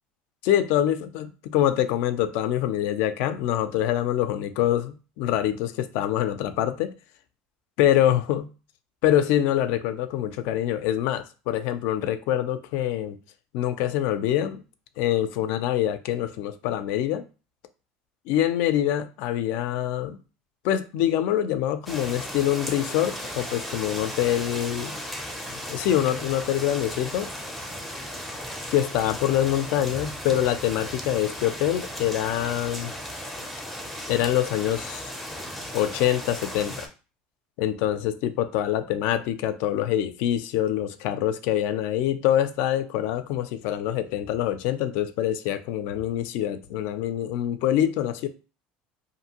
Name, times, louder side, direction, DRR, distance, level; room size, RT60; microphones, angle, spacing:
voice 1, 0.4-6.9 7.8-8.5 9.0-13.2 13.5-14.6 15.0-17.2 18.3-20.2 20.6-25.0 25.5-27.3 28.7-32.9 34.1-35.1 35.7-36.9 37.6-48.3, left 12 dB, 70° left, 0.3 m, -25 dB
sound 1, 21.9-36.9, equal, ahead, 0.4 m, -36 dB
2.5 x 2.5 x 2.8 m
cardioid pair, 145°, 3 cm